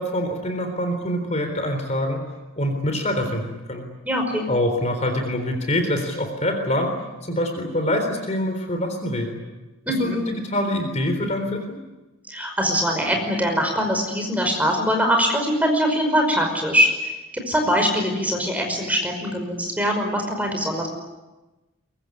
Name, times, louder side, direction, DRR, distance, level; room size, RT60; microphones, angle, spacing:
voice 1, 0.0-2.2 2.6-3.9 4.5-7.0 7.2-9.4 10.0-11.6, left 1 dB, 30° left, 5 dB, 3.8 m, -25 dB
voice 2, 4.1-4.5 9.9-10.2 12.3-20.9, equal, 5° right, 3 dB, 5.3 m, -22 dB
23.5 x 23.0 x 9.8 m, 1.1 s
head